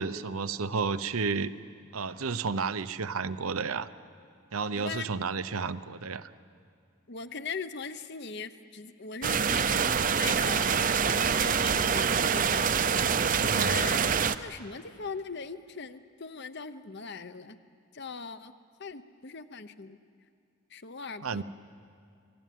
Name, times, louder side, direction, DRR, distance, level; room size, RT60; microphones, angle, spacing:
voice 1, 0.0-1.5 1.9-3.9 4.5-6.3 13.4-13.8 21.2-21.4, right 4 dB, 85° right, 12 dB, 0.8 m, -31 dB
voice 2, 4.7-5.1 7.1-12.8 13.5-14.0 14.4-17.6 17.9-18.5 18.8-20.0 20.7-21.4, left 5 dB, 50° left, 12 dB, 0.9 m, -40 dB
sound 1, 9.2-14.3, right 6 dB, 40° right, 0.6 m, -25 dB
27.0 x 19.0 x 9.3 m, 2.4 s
head